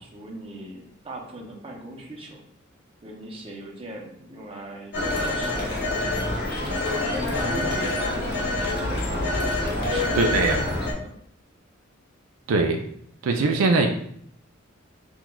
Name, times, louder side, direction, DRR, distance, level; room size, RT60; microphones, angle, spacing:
voice 1, 0.0-2.4 3.0-6.9 7.4-11.1, right 1 dB, 25° right, -1 dB, 0.7 m, -39 dB
Telephone, 4.9-10.9, left 2 dB, 55° left, 0.9 m, -26 dB
voice 2, 10.2-10.6 12.5-12.8 13.2-13.9, right 3 dB, 80° right, 4 dB, 0.4 m, -21 dB
5.8 x 2.3 x 2.3 m, 0.66 s
head